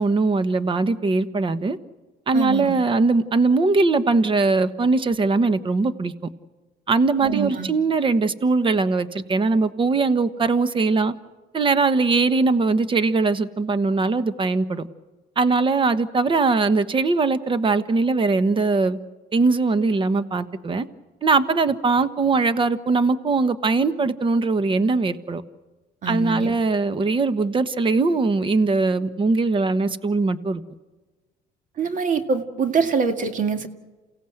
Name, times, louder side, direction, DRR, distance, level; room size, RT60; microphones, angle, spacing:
voice 1, 0.0-1.8 2.3-6.1 6.9-11.1 11.5-14.9 15.4-19.0 19.3-20.9 21.2-25.4 26.1-30.6, right 3 dB, 30° right, 1.2 m, -21 dB
voice 2, 2.3-2.8 7.2-7.7 26.0-26.5 31.8-33.7, right 5 dB, 50° right, 2.1 m, -24 dB
29.0 x 16.5 x 7.9 m
cardioid pair, 110°, 17 cm